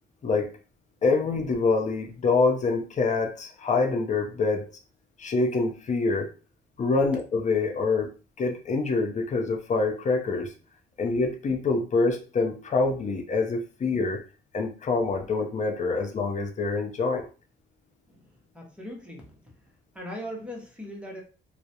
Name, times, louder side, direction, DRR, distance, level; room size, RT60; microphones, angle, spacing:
voice 1, 1.0-4.7 5.2-6.3 6.8-8.1 8.4-10.5 11.0-14.2 14.5-17.3, left 3 dB, 35° left, 5 dB, 0.5 m, -25 dB
voice 2, 18.1-19.5 19.9-21.2, equal, 5° right, 0 dB, 0.8 m, -40 dB
2.3 x 2.0 x 2.7 m, 0.36 s
cardioid pair, 90°, 20 cm